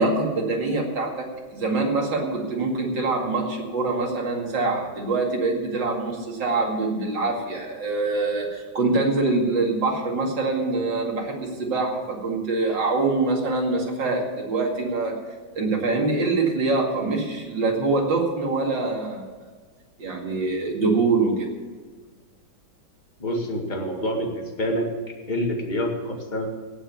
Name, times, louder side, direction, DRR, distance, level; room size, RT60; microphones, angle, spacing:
voice 1, 0.0-15.2 15.5-19.3 20.0-21.5, right 3 dB, 65° right, 0 dB, 3.0 m, -24 dB
voice 2, 23.2-24.9 25.3-26.5, equal, 25° left, 1 dB, 1.9 m, -27 dB
17.5 x 6.4 x 8.3 m, 1.4 s
omnidirectional pair, 2.2 m